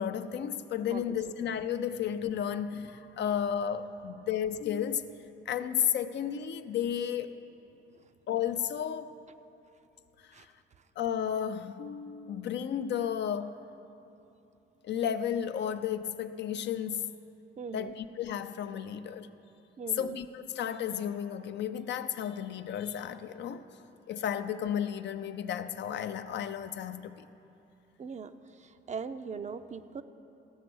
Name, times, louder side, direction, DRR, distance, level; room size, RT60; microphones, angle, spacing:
voice 1, 0.0-5.2 5.5-7.3 8.3-9.1 10.4-10.5 11.0-13.6 14.8-17.1 17.7-19.3 20.0-23.7 24.1-27.3, left 9 dB, 60° left, 0.5 m, -33 dB
voice 2, 17.6-18.0 19.8-20.2 28.0-28.3 28.6-30.0, right 5 dB, 35° right, 0.5 m, -40 dB
14.5 x 6.0 x 6.2 m
cardioid pair, 90°, 20 cm